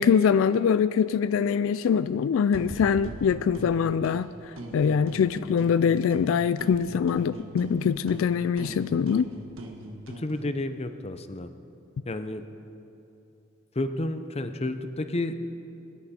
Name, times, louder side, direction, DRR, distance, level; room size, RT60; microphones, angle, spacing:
voice 1, 0.0-4.3 4.7-9.3, left 7 dB, 75° left, 14 dB, 0.3 m, -23 dB
sound 1, 2.5-4.2 4.6-6.3 6.6-10.3, right 1 dB, 85° right, 1.6 m, -41 dB
voice 2, 10.2-11.5 12.1-12.4 13.7-15.3, left 2 dB, 30° left, 9 dB, 0.7 m, -31 dB
23.0 x 10.5 x 4.3 m, 2.8 s
head